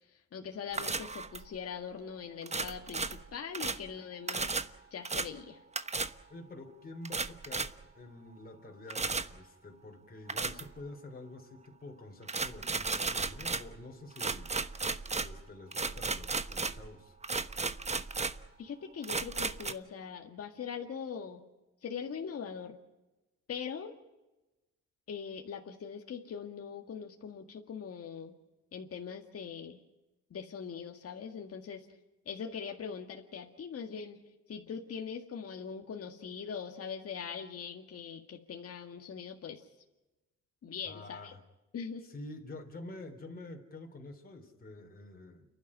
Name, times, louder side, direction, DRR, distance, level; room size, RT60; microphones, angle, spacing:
voice 1, 0.1-5.6 18.6-21.4 21.8-22.8 23.5-23.9 25.1-28.3 28.7-29.8 30.3-31.9 32.3-34.2 34.5-39.7 40.6-41.3 41.7-42.0, left 6 dB, 50° left, 3 dB, 2.0 m, -42 dB
sound 1, 0.7-1.6 2.4-3.9 4.3-4.7 5.0-5.3 5.7-6.1 7.0-7.8 8.9-9.4 10.3-10.8 12.3-13.8 14.2-16.9 17.2-18.5 19.0-19.7, right 4 dB, 20° right, 1.1 m, -35 dB
voice 2, 6.3-17.2 40.8-41.4 42.0-45.5, left 2 dB, 30° left, 2 dB, 3.5 m, -48 dB
29.5 x 11.5 x 9.9 m, 1.0 s
cardioid pair, 90°, 30 cm